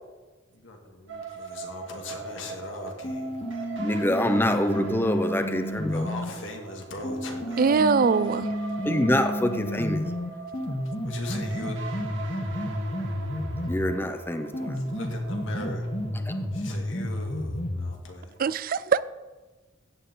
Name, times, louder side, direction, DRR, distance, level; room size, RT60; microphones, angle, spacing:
voice 1, 0.5-4.0 5.9-7.9 11.1-11.7 14.5-15.9 16.5-18.3, left 2 dB, 85° left, 2 dB, 2.3 m, -40 dB
sound 1, 1.1-16.6, right 4 dB, 85° right, 2.3 m, -41 dB
sound 2, 3.0-6.3 7.0-14.0 14.5-18.0, equal, 30° left, 1.3 m, -31 dB
voice 2, 3.8-6.1 8.8-10.0 13.7-14.8 16.3-16.4, left 1 dB, 10° left, 8 dB, 0.7 m, -25 dB
voice 3, 7.6-8.5 13.7-13.8 18.4-19.0, right 5 dB, 50° right, 17 dB, 0.4 m, -22 dB
15.5 x 9.1 x 3.9 m, 1.3 s
head